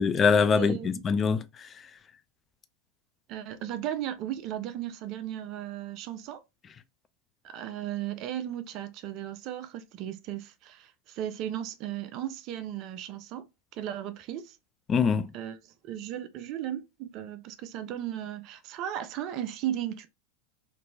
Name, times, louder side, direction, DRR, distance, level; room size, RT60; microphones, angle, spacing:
voice 1, 0.0-1.7 14.9-15.3, left 5 dB, 30° left, 0.3 m, -24 dB
voice 2, 0.5-1.0 3.3-6.4 7.4-13.5 13.7-14.6 15.3-20.1, right 11 dB, 50° right, 0.4 m, -36 dB
2.8 x 2.6 x 2.2 m
figure-of-eight pair, 85°, 0 cm